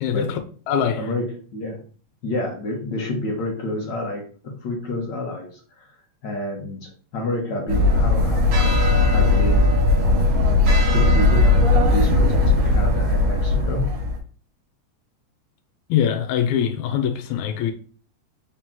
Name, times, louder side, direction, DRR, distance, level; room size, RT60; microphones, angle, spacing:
voice 1, 0.0-0.4 0.7-1.1 15.9-17.7, left 8 dB, 85° left, 2.0 m, -22 dB
voice 2, 1.0-1.8 2.2-5.9 6.2-9.7 10.8-13.9, left 1 dB, 60° left, 1.2 m, -29 dB
sound 1, 7.7-14.2, left 2 dB, 70° right, 2.3 m, -18 dB
5.0 x 3.0 x 3.6 m
omnidirectional pair, 3.3 m